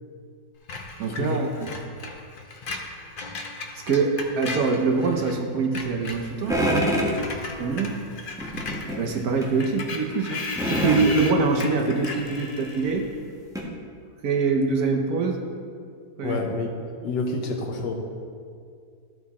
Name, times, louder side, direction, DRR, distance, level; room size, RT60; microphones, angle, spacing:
Screech, 0.7-5.4 5.6-13.1, left 3 dB, 60° left, 0.5 m, -36 dB
voice 1, 1.0-1.7 3.9-6.6 7.6-8.1 9.0-10.4 10.7-13.1 14.2-15.4 16.2-16.4, right 4 dB, 65° right, 3 dB, 1.1 m, -24 dB
sound 1, 6.5-7.2 8.4-9.0 9.4-9.5 10.6-11.1 12.3-12.4 12.9-13.0 13.5-13.6, equal, 5° right, 0.9 m, -24 dB
voice 2, 16.2-16.7 17.0-17.9, left 3 dB, 80° left, 2 dB, 1.6 m, -28 dB
13.5 x 4.7 x 4.1 m, 2.2 s
omnidirectional pair, 2.0 m